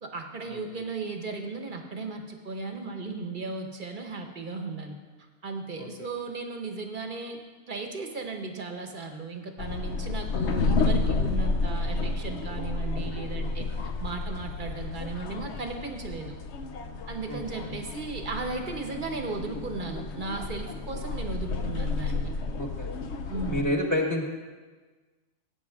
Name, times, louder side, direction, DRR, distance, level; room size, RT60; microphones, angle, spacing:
voice 1, 0.0-5.0 5.4-16.4 17.1-22.3 23.3-23.8, right 3 dB, 40° right, 4 dB, 1.1 m, -36 dB
sound 1, 9.6-23.6, left 3 dB, 55° left, 0.9 m, -31 dB
voice 2, 17.3-17.6 22.5-22.9 23.5-24.2, left 1 dB, 15° left, 0 dB, 1.4 m, -29 dB
16.5 x 8.6 x 3.6 m, 1.4 s
omnidirectional pair, 1.5 m